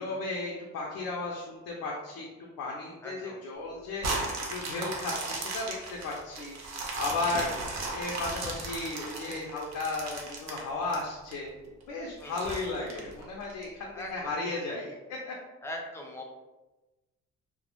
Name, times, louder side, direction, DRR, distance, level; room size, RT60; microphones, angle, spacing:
voice 1, 0.0-2.3 2.6-7.5 7.9-15.3, left 3 dB, 80° left, -2 dB, 0.5 m, -35 dB
voice 2, 3.0-3.4 7.3-7.7 12.2-12.5 13.9-14.4 15.6-16.3, left 1 dB, 10° left, 1 dB, 0.4 m, -41 dB
sound 1, 4.0-11.3 11.8-11.9 12.4-13.6 14.2-14.3, right 3 dB, 60° right, 0.6 m, -36 dB
2.1 x 2.1 x 2.8 m, 1.1 s
cardioid pair, 90°, 30 cm